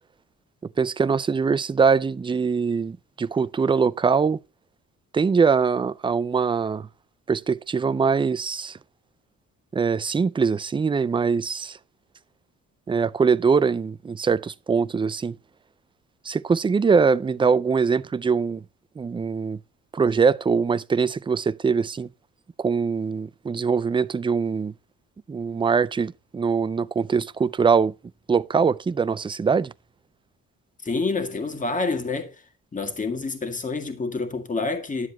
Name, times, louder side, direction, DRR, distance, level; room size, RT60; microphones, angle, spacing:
voice 1, 0.8-4.4 5.1-6.9 7.3-8.8 9.7-11.8 12.9-15.3 16.2-18.6 19.0-19.6 19.9-22.1 22.6-24.7 25.3-27.9 28.3-29.7, right 5 dB, 15° right, 0.4 m, -22 dB
voice 2, 30.8-32.3 32.7-35.1, left 3 dB, 25° left, 1.9 m, -27 dB
11.0 x 7.4 x 2.8 m
cardioid pair, 115°, 32 cm